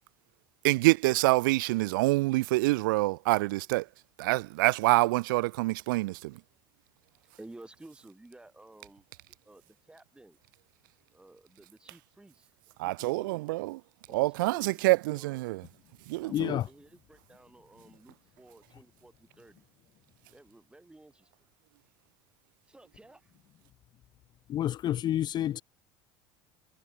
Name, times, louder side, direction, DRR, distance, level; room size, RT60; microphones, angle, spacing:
voice 1, 0.6-3.9 4.2-6.4 12.8-13.8 14.1-15.6 16.1-16.6, right 21 dB, 85° right, 0.8 m, -26 dB
voice 2, 7.4-9.0 9.4-10.4 11.1-12.5 12.8-13.4 14.1-14.8 15.1-15.4 16.2-19.6 20.3-21.3 22.6-23.4, right 2 dB, 10° right, 7.1 m, -54 dB
voice 3, 16.3-16.7 24.5-25.6, left 12 dB, 45° left, 0.5 m, -29 dB
supercardioid pair, 95°, 11 cm